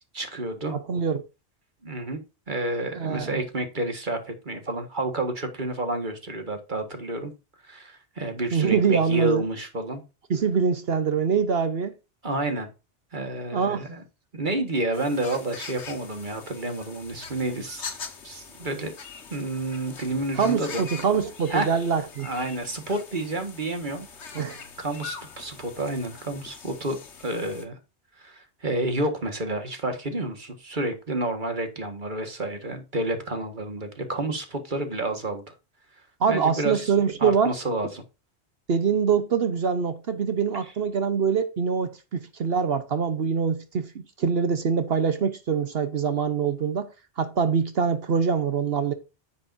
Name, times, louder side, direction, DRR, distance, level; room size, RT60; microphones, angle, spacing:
voice 1, 0.1-0.7 1.8-2.2 2.5-7.3 7.6-10.0 12.2-12.7 13.1-14.0 14.3-17.9 18.2-18.9 19.3-20.8 21.5-21.7 22.2-24.4 24.8-27.8 28.2-35.5 36.3-36.9 37.2-38.0 40.5-40.7, right 2 dB, 45° right, 1.8 m, -30 dB
voice 2, 0.7-1.2 2.9-3.4 8.5-9.4 10.3-11.9 13.5-13.9 20.3-22.3 24.3-24.6 36.2-37.5 38.7-43.9 44.2-46.9 47.2-48.9, right 6 dB, 65° right, 1.1 m, -24 dB
sound 1, 14.9-27.6, left 5 dB, 85° left, 1.6 m, -42 dB
10.0 x 7.7 x 2.6 m
omnidirectional pair, 1.1 m